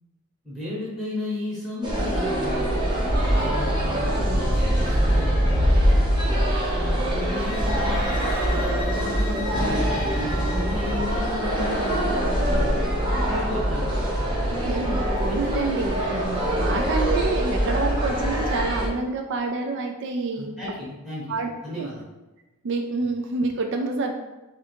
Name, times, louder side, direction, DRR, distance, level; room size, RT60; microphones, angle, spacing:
voice 1, 0.4-2.9 3.3-6.0 6.7-12.9 13.3-14.0 15.3-15.4 20.3-22.0, left 1 dB, ahead, -8 dB, 0.9 m, -34 dB
sound 1, 1.8-18.9, equal, 20° right, 0.9 m, -23 dB
sound 2, 7.3-12.2, left 4 dB, 55° left, 0.5 m, -39 dB
voice 2, 14.6-20.6 21.3-21.5 21.7-21.9 22.6-24.1, right 3 dB, 60° right, 3 dB, 0.4 m, -28 dB
3.4 x 2.5 x 4.4 m, 1.1 s
head